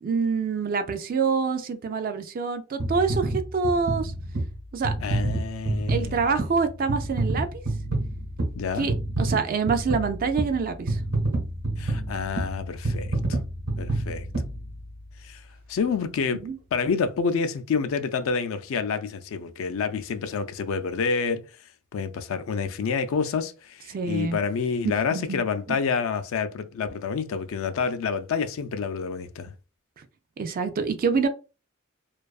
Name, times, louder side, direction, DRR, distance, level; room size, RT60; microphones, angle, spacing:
voice 1, 0.0-4.1 4.7-4.9 5.9-7.6 8.8-11.0 16.4-16.6 23.9-24.4 24.8-25.4 25.7-25.8 30.0-30.1 30.4-31.3, right 5 dB, 40° right, 0.3 m, -26 dB
sound 1, 2.8-15.2 15.8-15.9, right 2 dB, 90° right, 1.0 m, -29 dB
voice 2, 5.0-6.2 8.6-8.9 11.8-13.1 13.8-14.3 15.2-15.4 15.7-16.4 16.7-21.4 21.9-29.5, left 5 dB, 65° left, 0.3 m, -28 dB
2.6 x 2.3 x 2.3 m
head